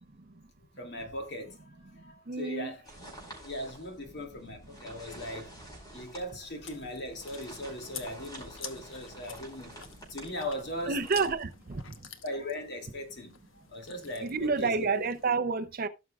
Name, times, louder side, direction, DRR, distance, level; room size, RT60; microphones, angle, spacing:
voice 1, 0.8-2.8 3.4-5.6 5.9-9.8 10.1-11.1 12.2-14.9, left 1 dB, 55° left, 2.6 m, -39 dB
voice 2, 2.3-2.7 10.9-11.8 14.2-15.9, right 4 dB, 45° right, 0.6 m, -29 dB
sound 1, 2.8-11.3, right 1 dB, 20° left, 4.7 m, -49 dB
Chewing mastication, 6.4-15.3, left 7 dB, 75° left, 1.1 m, -49 dB
17.0 x 6.0 x 2.4 m
head